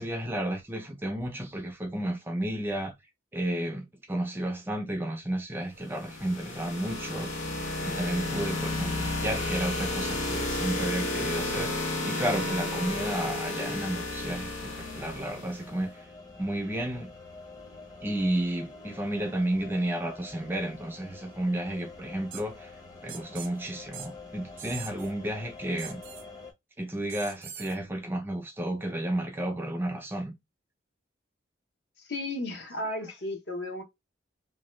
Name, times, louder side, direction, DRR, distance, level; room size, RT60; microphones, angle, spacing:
voice 1, 0.0-2.9 3.3-7.5 7.8-16.1 16.4-17.1 18.0-22.8 23.0-26.0 26.8-30.3 32.8-33.0, right 1 dB, 10° right, 0.4 m, -32 dB
sound 1, 5.9-15.7, left 2 dB, 90° left, 0.9 m, -32 dB
sound 2, 14.7-26.5, left 3 dB, 20° left, 0.7 m, -47 dB
sound 3, 22.3-22.4 23.1-23.5 23.9-24.1 24.6-25.1 25.8-26.2 27.1-27.8, right 9 dB, 90° right, 0.6 m, -42 dB
voice 2, 32.0-33.8, left 1 dB, 60° left, 0.8 m, -34 dB
2.8 x 2.2 x 3.1 m
head